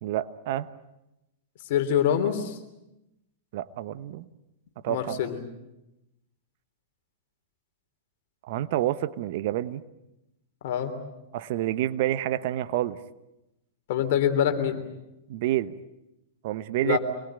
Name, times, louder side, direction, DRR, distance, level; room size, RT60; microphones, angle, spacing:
voice 1, 0.0-0.7 3.5-4.3 4.8-5.2 8.5-9.8 11.3-13.0 15.3-15.7 16.4-17.0, right 13 dB, 55° right, 14 dB, 1.0 m, -28 dB
voice 2, 1.7-2.6 4.9-5.4 10.6-10.9 13.9-14.8 16.8-17.0, left 9 dB, 55° left, 7 dB, 3.3 m, -25 dB
26.5 x 21.0 x 9.0 m, 0.92 s
hypercardioid pair, 100°, 0 cm